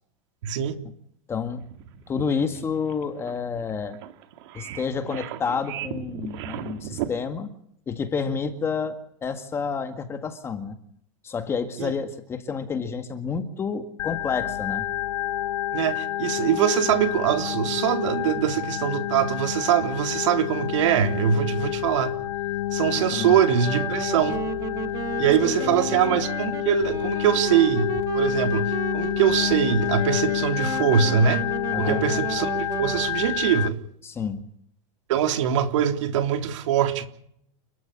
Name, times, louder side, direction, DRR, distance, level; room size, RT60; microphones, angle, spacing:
voice 1, 0.4-0.7 11.8-11.9 15.7-22.1 22.7-24.4 25.2-31.4 31.8-33.8 35.1-37.1, right 9 dB, 65° right, 7 dB, 3.4 m, -23 dB
voice 2, 1.3-1.6 2.1-4.0 4.5-7.5 7.9-8.9 9.2-10.8 11.2-14.9 23.1-23.4 25.6-25.9 31.7-32.0 34.0-34.4, left 5 dB, 15° left, 8 dB, 1.9 m, -29 dB
sound 1, 1.6-7.1, right 11 dB, 50° right, 2.4 m, -36 dB
Organ, 14.0-33.7, left 13 dB, 85° left, 1.1 m, -29 dB
Wind instrument woodwind instrument, 23.6-33.1, right 8 dB, 20° right, 1.4 m, -34 dB
30.0 x 13.0 x 8.6 m, 0.69 s
supercardioid pair, 165°, 17 cm